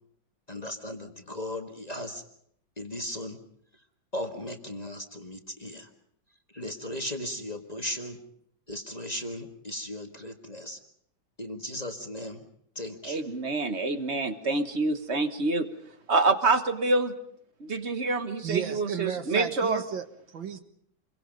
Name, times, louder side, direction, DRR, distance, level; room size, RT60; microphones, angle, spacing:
voice 1, 0.5-2.2 2.8-3.4 4.1-5.9 6.5-8.2 8.7-10.8 11.4-12.4 12.8-13.2, left 1 dB, 20° left, 5 dB, 1.7 m, -37 dB
voice 2, 13.0-15.7 16.1-17.1 17.6-19.8, right 3 dB, 40° right, 10 dB, 1.5 m, -26 dB
voice 3, 18.4-20.6, right 7 dB, 80° right, 9 dB, 2.3 m, -34 dB
28.0 x 23.0 x 5.3 m, 0.69 s
omnidirectional pair, 2.0 m